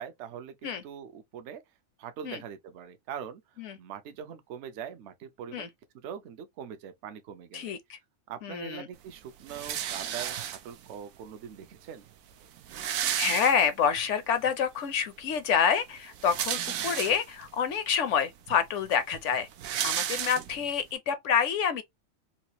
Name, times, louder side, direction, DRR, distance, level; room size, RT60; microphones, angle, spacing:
voice 1, 0.0-1.6 2.0-3.4 3.8-7.7 8.3-12.1, right 8 dB, 65° right, 0.9 m, -42 dB
voice 2, 7.5-8.0 8.4-8.9 13.1-19.5 19.8-21.8, left 7 dB, 70° left, 0.8 m, -27 dB
sound 1, 9.5-10.9 11.8-11.9 12.1-12.2 12.4-14.0 14.5-14.6 16.0-17.5 18.1-18.2 18.5-20.8, right 10 dB, 85° right, 1.0 m, -33 dB
4.0 x 2.4 x 2.8 m
omnidirectional pair, 1.4 m